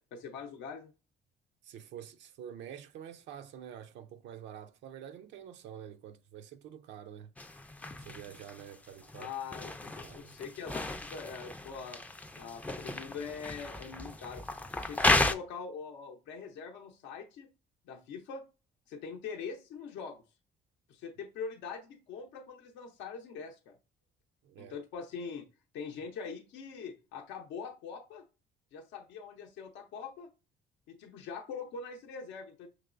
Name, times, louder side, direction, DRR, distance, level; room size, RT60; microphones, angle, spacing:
voice 1, 0.1-0.9 9.2-12.0 12.4-14.4 14.7-17.5 17.9-18.4 18.9-20.2 20.9-23.8 24.6-25.5 25.7-28.3 28.7-30.3 30.9-32.7, left 5 dB, 80° left, 0.6 m, -43 dB
voice 2, 1.6-7.3 8.0-9.3 10.0-10.3 24.4-24.8, right 9 dB, 75° right, 0.4 m, -47 dB
sound 1, 7.4-15.3, left 2 dB, 10° left, 0.3 m, -34 dB
6.0 x 3.0 x 2.4 m
cardioid pair, 100°, 19 cm